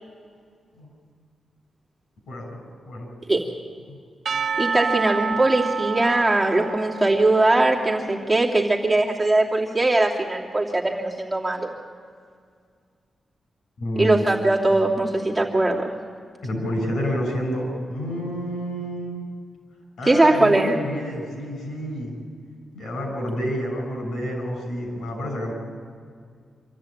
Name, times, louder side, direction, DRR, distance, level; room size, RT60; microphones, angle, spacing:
voice 1, 2.3-3.1 3.9-4.0 13.8-14.2 16.4-19.3 20.0-22.2 22.7-25.5, equal, 85° left, 2 dB, 6.1 m, -29 dB
Percussion / Church bell, 4.3-8.4, right 6 dB, 65° right, 0.8 m, -29 dB
voice 2, 4.6-11.7 14.0-15.9 20.1-20.7, right 2 dB, 10° right, -3 dB, 2.9 m, -20 dB
25.5 x 14.0 x 8.8 m, 2.1 s
cardioid pair, 95°, 0 cm